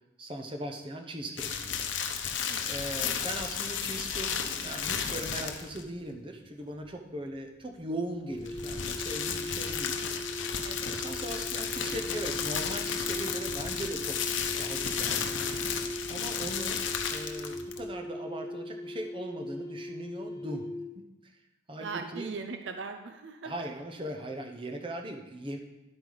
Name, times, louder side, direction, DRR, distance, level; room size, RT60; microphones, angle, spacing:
voice 1, 0.2-1.8 2.6-10.0 10.8-14.2 14.5-15.3 16.1-16.8 17.1-20.7 21.0-21.3 21.7-22.3 23.4-25.6, right 1 dB, 25° right, 4 dB, 0.9 m, -39 dB
sound 1, 1.4-5.9 8.3-17.9, left 7 dB, 80° left, 0.9 m, -33 dB
sound 2, 8.2-21.0, left 1 dB, 20° left, 0.5 m, -39 dB
voice 2, 21.8-23.5, right 4 dB, 75° right, 7 dB, 0.6 m, -39 dB
10.5 x 7.9 x 4.0 m, 1.0 s
head